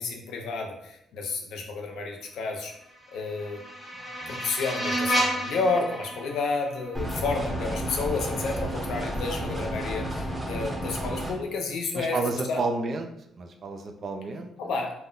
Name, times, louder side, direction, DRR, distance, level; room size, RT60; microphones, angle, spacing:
voice 1, 0.0-2.7 3.1-3.6 4.3-12.2 12.5-12.6 14.6-14.9, left 4 dB, 80° left, 2 dB, 0.5 m, -31 dB
sound 1, 2.8-7.9, equal, 20° left, 0.8 m, -32 dB
sound 2, 6.9-11.3, equal, 15° right, 0.7 m, -31 dB
voice 2, 11.9-13.1 13.4-14.5, right 3 dB, 50° right, 4 dB, 0.3 m, -31 dB
2.1 x 2.1 x 3.7 m, 0.78 s
cardioid pair, 90°, 0 cm